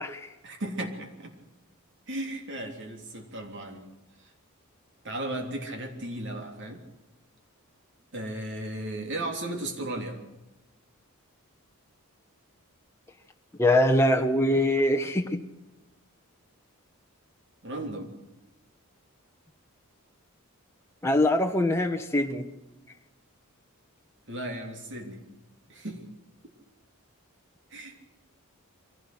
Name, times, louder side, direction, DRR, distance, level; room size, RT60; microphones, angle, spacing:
voice 1, 0.4-1.3 2.1-3.8 5.0-6.8 8.1-10.2 17.6-18.1 24.3-25.2 25.7-26.0 27.7-28.0, right 1 dB, 55° right, 4 dB, 3.3 m, -35 dB
voice 2, 13.6-15.4 21.0-22.5, left 1 dB, 10° left, 3 dB, 1.2 m, -23 dB
23.5 x 16.5 x 8.0 m, 1.0 s
head